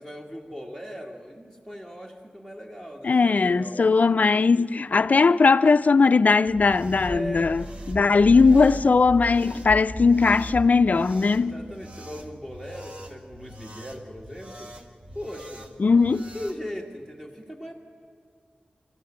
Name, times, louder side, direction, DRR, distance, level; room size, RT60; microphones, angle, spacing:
voice 1, 0.0-3.9 7.0-7.5 8.0-8.7 11.4-14.7 15.1-15.7 16.3-17.7, equal, 20° right, 1.8 m, -39 dB
voice 2, 3.0-11.5 15.8-16.3, left 4 dB, 55° left, 0.6 m, -19 dB
sound 1, 6.4-16.6, equal, 40° right, 1.9 m, -38 dB
26.5 x 14.5 x 8.8 m
wide cardioid pair, 80°, 3 cm